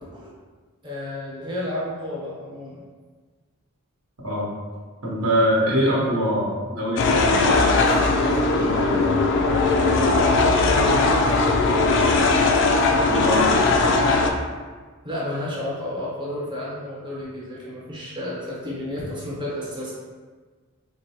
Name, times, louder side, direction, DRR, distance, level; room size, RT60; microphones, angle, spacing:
voice 1, 0.0-0.3 0.8-2.8 10.5-11.4 15.0-19.9, left 1 dB, 20° right, -7 dB, 0.9 m, -31 dB
voice 2, 5.0-8.3 8.6-9.0 13.1-13.5, equal, 75° right, -6 dB, 1.0 m, -24 dB
sound 1, 7.0-14.3, left 3 dB, 55° left, 0.3 m, -19 dB
4.0 x 2.2 x 2.8 m, 1.4 s
head